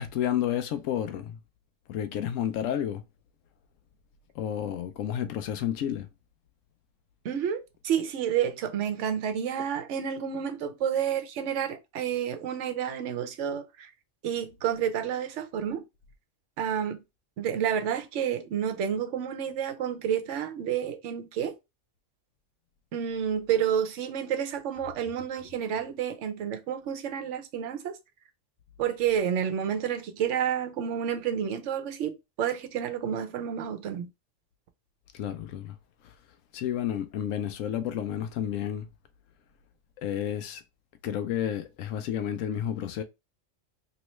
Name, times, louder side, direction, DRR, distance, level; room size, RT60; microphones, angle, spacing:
voice 1, 0.0-1.4 1.9-3.0 4.3-6.1 35.1-35.8 36.0-36.1 36.5-38.9 40.0-40.6 41.0-43.0, left 10 dB, 85° left, 1.0 m, -31 dB
voice 2, 7.2-13.9 14.2-15.8 16.6-17.0 17.4-21.6 22.9-28.0 28.8-34.1, right 8 dB, 70° right, 1.0 m, -30 dB
3.0 x 3.0 x 3.1 m
omnidirectional pair, 1.3 m